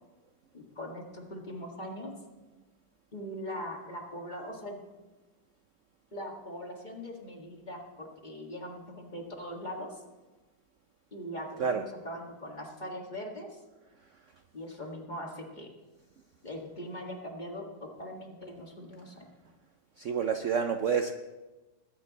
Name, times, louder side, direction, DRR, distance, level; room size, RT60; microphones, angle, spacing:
voice 1, 0.5-2.1 3.1-4.8 6.1-10.0 11.1-13.6 14.5-15.7 16.4-19.3, equal, 25° left, 0 dB, 1.6 m, -41 dB
voice 2, 20.0-21.1, right 6 dB, 65° right, 7 dB, 0.7 m, -28 dB
20.0 x 9.1 x 4.0 m, 1.2 s
omnidirectional pair, 1.9 m